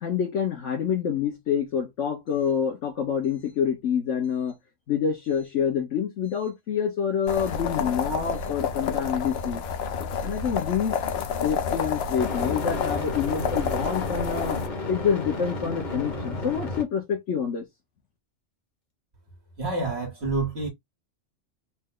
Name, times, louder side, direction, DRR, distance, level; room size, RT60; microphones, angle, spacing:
voice 1, 0.0-4.5 4.9-9.6 10.2-11.0 11.4-14.6 14.9-17.6, left 7 dB, 85° left, 1.3 m, -27 dB
sound 1, 7.3-14.7, left 6 dB, 65° left, 0.8 m, -29 dB
sound 2, 7.3-7.5 12.2-16.8, left 2 dB, 40° left, 1.3 m, -32 dB
voice 2, 19.6-20.7, right 3 dB, 65° right, 1.7 m, -28 dB
4.2 x 2.2 x 3.7 m
omnidirectional pair, 1.2 m